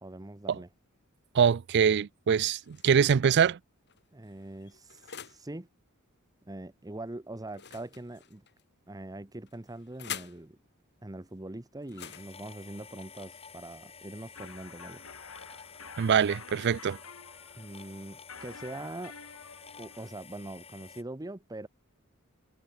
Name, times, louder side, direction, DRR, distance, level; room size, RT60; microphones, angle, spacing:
voice 1, 0.0-0.7 4.1-5.7 6.5-8.4 8.9-10.6 11.0-15.0 17.5-19.1 19.8-21.7, right 1 dB, 15° right, 0.9 m, -42 dB
voice 2, 1.3-3.6 16.0-17.0, right 7 dB, 55° right, 0.4 m, -24 dB
sound 1, 2.3-3.1 3.8-5.5 7.5-8.6 9.5-10.5 11.8-13.8, left 9 dB, 55° left, 4.8 m, -46 dB
sound 2, 12.0-21.0, left 6 dB, 30° left, 3.2 m, -51 dB
sound 3, 14.3-20.1, left 5 dB, 85° left, 6.9 m, -49 dB
head